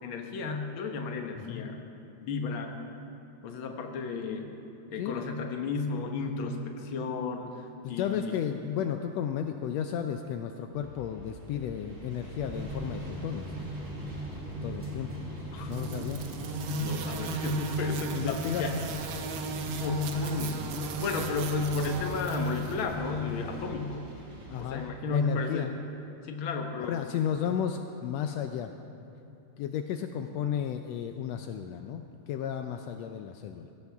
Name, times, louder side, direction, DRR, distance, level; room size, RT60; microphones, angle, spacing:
voice 1, 0.0-1.8 2.2-2.8 3.4-4.5 4.9-7.6 7.9-8.4 15.5-15.7 16.7-18.8 19.1-19.5 19.8-20.6 21.0-24.0 24.6-25.7 26.2-27.0, left 4 dB, 55° left, 3 dB, 1.5 m, -33 dB
voice 2, 1.3-1.7 5.0-5.3 7.8-13.5 14.6-15.1 15.7-16.3 17.9-18.6 22.3-22.4 24.5-24.8 25.1-25.7 26.8-28.7 29.6-33.7, left 9 dB, 85° left, 6 dB, 1.5 m, -33 dB
sound 1, 10.7-24.9, right 1 dB, 45° right, 3.6 m, -47 dB
sound 2, 12.4-23.6, right 1 dB, 5° right, 1.4 m, -39 dB
sound 3, 15.7-22.8, right 4 dB, 65° right, 1.7 m, -37 dB
22.0 x 17.0 x 3.5 m, 2.7 s
omnidirectional pair, 3.7 m